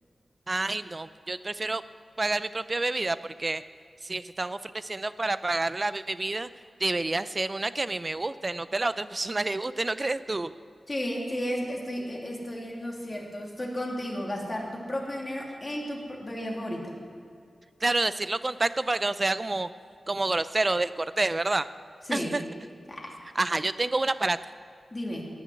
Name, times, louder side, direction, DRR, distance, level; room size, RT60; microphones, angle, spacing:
voice 1, 0.5-1.8 2.2-3.6 4.0-6.5 6.8-10.5 17.8-19.7 20.1-21.7 22.1-22.4 23.4-24.4, right 2 dB, 25° right, 14 dB, 0.5 m, -28 dB
voice 2, 10.9-16.9 22.1-22.4 22.9-23.1 24.9-25.2, equal, 25° left, -2 dB, 2.9 m, -33 dB
19.0 x 7.1 x 9.6 m, 2.2 s
wide cardioid pair, 130°, 0 cm